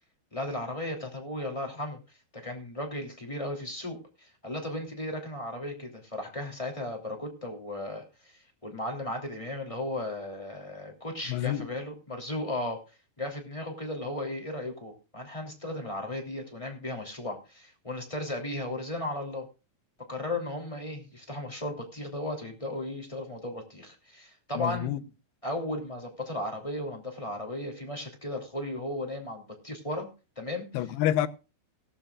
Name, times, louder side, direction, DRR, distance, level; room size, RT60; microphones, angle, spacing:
voice 1, 0.3-2.0 2.3-12.8 13.2-19.5 20.1-24.9 25.4-30.1 30.4-30.7, left 1 dB, 10° left, 2.5 m, -35 dB
voice 2, 11.3-11.7 24.6-25.0 30.7-31.3, left 12 dB, 80° left, 2.9 m, -28 dB
17.0 x 13.5 x 2.4 m
omnidirectional pair, 4.6 m